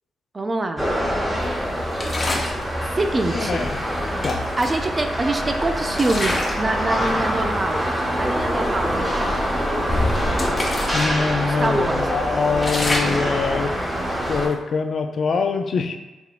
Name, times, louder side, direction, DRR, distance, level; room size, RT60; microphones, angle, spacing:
voice 1, 0.3-0.9 3.0-3.7 4.6-7.9 8.1-9.2 11.4-12.1, right 2 dB, 30° right, 6 dB, 0.4 m, -25 dB
sound 1, 0.8-14.5, equal, 5° right, 0.9 m, -25 dB
sound 2, 1.9-2.6 3.8-3.9 4.2-5.4 5.9-6.7 7.1-7.3 8.0-8.1 8.4-8.7 9.2-11.1 11.5-11.6 12.0-14.5, left 1 dB, 30° left, 0.8 m, -27 dB
voice 2, 3.3-3.8 4.2-4.4 10.9-13.7 14.3-16.0, left 5 dB, 60° left, 6 dB, 0.4 m, -24 dB
3.5 x 3.4 x 2.4 m, 1.1 s
cardioid pair, 70°, 0 cm